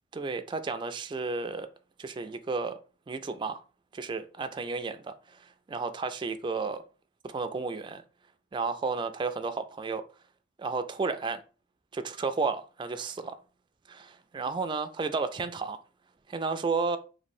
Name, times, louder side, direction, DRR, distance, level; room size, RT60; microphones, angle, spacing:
voice 1, 0.1-1.7 2.0-2.8 3.1-3.6 3.9-6.8 7.2-8.0 8.5-10.0 10.6-11.4 11.9-13.4 13.9-15.8 16.3-17.0, right 4 dB, 25° right, 0.3 m, -32 dB
3.0 x 2.5 x 4.2 m
head